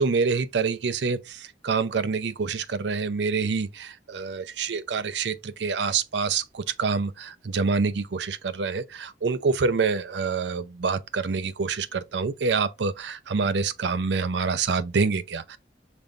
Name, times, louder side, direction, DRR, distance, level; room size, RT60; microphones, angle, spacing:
voice 1, 0.0-15.6, right 4 dB, 85° right, 0.5 m, -26 dB
5.4 x 3.9 x 2.4 m
head